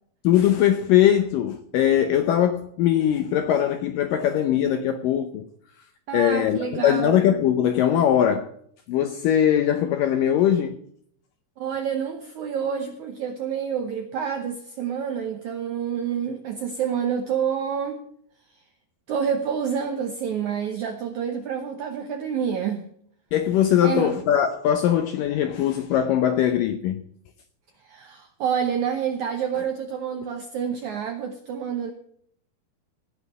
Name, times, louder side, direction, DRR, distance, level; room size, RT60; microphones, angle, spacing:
voice 1, 0.2-5.5 6.1-8.5 8.9-10.8 23.3-27.0, left 10 dB, 80° left, 2.0 m, -21 dB
voice 2, 6.1-7.2 11.6-18.0 19.1-22.9 23.8-24.2 27.8-31.9, right 7 dB, 75° right, 1.7 m, -28 dB
17.5 x 5.8 x 8.2 m
omnidirectional pair, 4.8 m